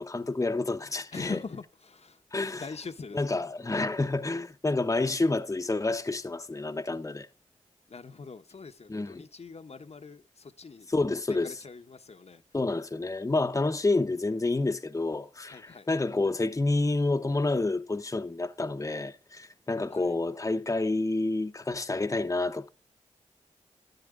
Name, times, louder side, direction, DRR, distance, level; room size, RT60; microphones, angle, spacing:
voice 1, 0.0-1.4 2.3-2.7 3.1-7.3 8.9-9.3 10.9-11.6 12.5-22.7, left 2 dB, 25° left, 0.9 m, -29 dB
voice 2, 1.1-2.2 2.6-3.4 3.7-3.9 7.9-10.9 11.4-12.4 15.5-15.9 19.9-20.1, left 4 dB, 50° left, 1.0 m, -43 dB
12.0 x 9.7 x 3.7 m
cardioid pair, 45°, 14 cm